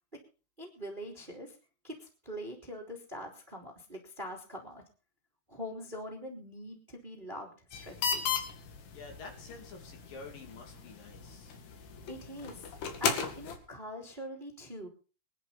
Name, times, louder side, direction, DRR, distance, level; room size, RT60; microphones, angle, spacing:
voice 1, 0.6-1.6 1.8-4.8 5.5-8.2 12.1-12.7 13.0-14.9, equal, 15° right, 1 dB, 2.3 m, -43 dB
sound 1, 7.7-13.6, left 6 dB, 75° left, 4.1 m, -36 dB
voice 2, 8.9-11.5, left 4 dB, 60° left, 3 dB, 4.2 m, -48 dB
23.5 x 11.0 x 4.2 m, 0.36 s
omnidirectional pair, 4.8 m